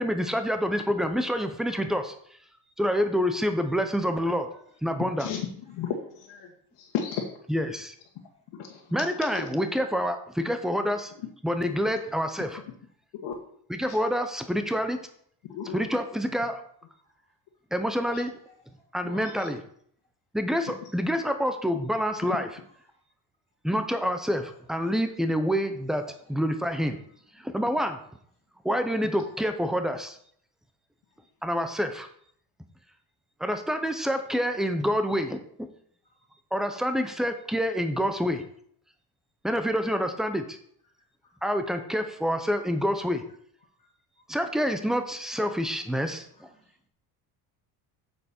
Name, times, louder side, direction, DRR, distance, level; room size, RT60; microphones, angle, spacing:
voice 1, 0.0-2.1 2.8-4.5 4.8-5.3 7.5-7.9 8.9-11.1 11.4-12.6 13.7-15.0 15.6-16.6 17.7-18.3 18.9-19.6 20.3-22.5 23.6-26.0 26.3-27.0 27.4-28.0 28.6-30.2 31.4-32.1 33.4-35.4 36.5-38.4 39.4-40.4 41.4-43.2 44.3-46.3, equal, ahead, 7 dB, 0.6 m, -27 dB
voice 2, 4.5-4.8 8.2-8.3 11.8-11.9 17.0-17.2 18.4-18.8 22.8-23.0 24.7-24.9 25.7-26.3 26.9-27.6 36.0-36.3 42.7-43.0 43.8-43.9 44.2-44.3 45.4-45.5 45.8-46.9, left 1 dB, 15° left, -2 dB, 2.2 m, -62 dB
voice 3, 5.2-5.9 6.1-6.5 6.8-7.2 8.5-8.8 9.1-9.5 11.2-11.3 13.2-13.4 13.9-14.0 15.5-15.8 18.1-18.2 19.0-19.5, left 8 dB, 70° left, -2 dB, 1.7 m, -35 dB
8.4 x 7.1 x 4.3 m, 0.63 s
cardioid pair, 160°, 43 cm